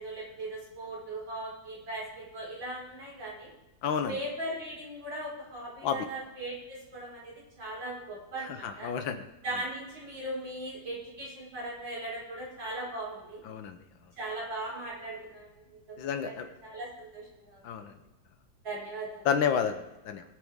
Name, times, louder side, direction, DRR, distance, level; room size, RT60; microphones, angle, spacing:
voice 1, 0.0-3.5 4.1-8.9 9.4-13.4 14.2-17.6 18.6-19.2, right 1 dB, 75° right, -6 dB, 6.0 m, -39 dB
voice 2, 3.8-4.2 5.8-6.0 8.5-9.2 13.4-13.8 16.0-16.5 17.6-17.9 19.2-20.2, left 7 dB, 80° left, 8 dB, 1.7 m, -30 dB
22.0 x 8.9 x 3.6 m, 0.99 s
omnidirectional pair, 2.1 m